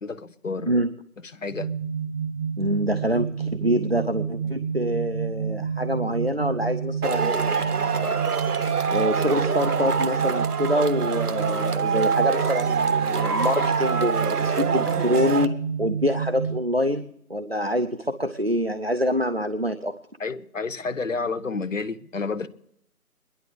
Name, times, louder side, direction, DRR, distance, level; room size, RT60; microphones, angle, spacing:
voice 1, 0.0-0.7 1.3-1.7 20.2-22.5, left 4 dB, 55° left, 0.9 m, -30 dB
sound 1, 1.5-16.5, right 6 dB, 10° right, 1.9 m, -29 dB
voice 2, 2.6-19.9, equal, 45° right, 0.4 m, -26 dB
Male speech man speaking / Shout / Clapping, 7.0-15.5, right 5 dB, 80° right, 1.0 m, -25 dB
21.5 x 11.0 x 3.3 m
figure-of-eight pair, 175°, 45 cm